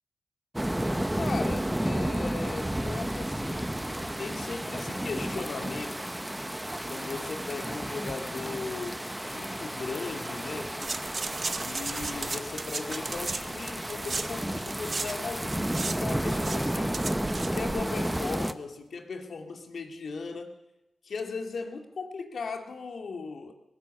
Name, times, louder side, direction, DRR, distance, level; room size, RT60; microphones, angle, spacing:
sound 1, 0.5-18.5, right 1 dB, 10° right, 0.9 m, -32 dB
voice 1, 1.2-3.8 4.2-6.1 6.9-10.8 11.5-17.1 17.4-20.6 21.0-23.5, left 4 dB, 65° left, 5 dB, 2.3 m, -38 dB
sound 2, 10.8-15.2 15.4-18.0 18.3-18.4, right 4 dB, 45° right, 1.2 m, -36 dB
19.0 x 16.0 x 8.4 m, 0.93 s
cardioid pair, 80°, 0 cm